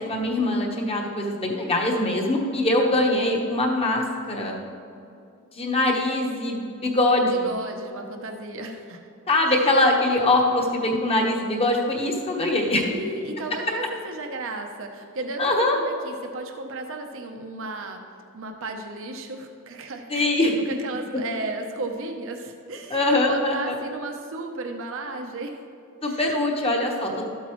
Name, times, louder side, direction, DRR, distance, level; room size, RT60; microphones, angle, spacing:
voice 1, 0.1-4.6 5.5-7.4 9.3-12.9 15.4-15.8 20.1-20.5 22.9-23.8 26.0-27.2, left 2 dB, 30° left, 1 dB, 1.2 m, -22 dB
voice 2, 7.2-9.0 9.6-9.7 12.9-18.0 18.3-25.6 26.0-26.2 27.1-27.2, right 2 dB, 65° right, 4 dB, 0.8 m, -34 dB
12.5 x 8.3 x 3.1 m, 2.6 s
head